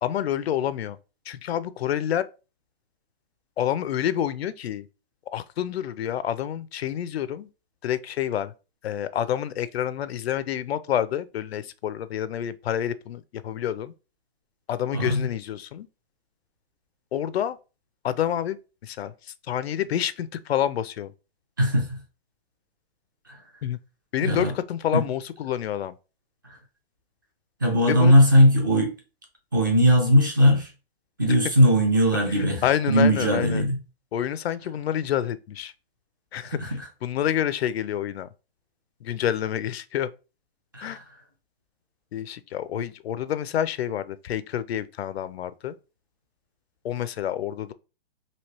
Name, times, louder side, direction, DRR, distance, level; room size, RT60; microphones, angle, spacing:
voice 1, 0.0-1.0 1.3-2.2 3.6-4.9 5.3-7.5 7.8-8.5 8.8-13.9 14.7-15.9 17.1-17.6 18.0-19.1 19.5-21.1 23.6-23.8 24.1-26.0 27.9-28.1 32.6-33.6 34.1-35.7 36.3-38.3 39.0-40.1 40.8-41.0 42.1-45.8 46.8-47.7, left 10 dB, 90° left, 0.5 m, -28 dB
voice 2, 14.9-15.3 21.6-22.0 23.3-23.4 24.2-24.5 24.9-25.0 27.6-28.9 29.5-30.7 31.2-33.8 36.5-36.9 40.7-41.0, equal, 20° right, 0.4 m, -19 dB
3.1 x 2.7 x 2.9 m
hypercardioid pair, 175°, 30 cm